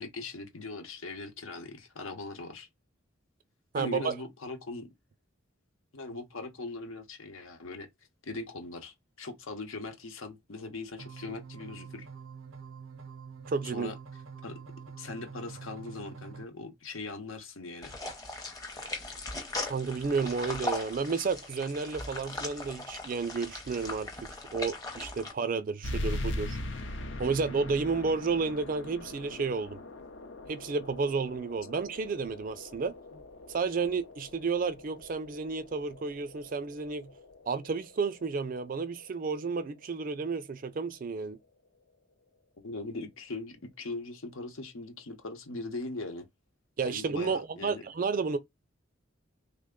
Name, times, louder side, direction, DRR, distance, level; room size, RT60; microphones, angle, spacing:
voice 1, 0.0-2.7 3.8-4.9 5.9-7.9 8.2-12.1 13.6-14.0 14.4-14.6 15.0-18.0 33.1-33.2 42.6-46.3 46.8-47.8, left 3 dB, 85° left, 0.9 m, -40 dB
voice 2, 3.7-4.2 13.5-13.9 18.8-18.9 19.6-26.6 27.2-29.8 30.5-32.9 33.5-37.1 37.5-41.4 46.8-48.4, right 4 dB, 45° right, 0.4 m, -31 dB
sound 1, 11.0-16.5, right 6 dB, 80° right, 0.6 m, -46 dB
sound 2, 17.8-25.3, left 2 dB, 20° left, 0.7 m, -39 dB
sound 3, 25.8-40.9, left 1 dB, 65° left, 0.6 m, -41 dB
3.3 x 2.1 x 3.6 m
head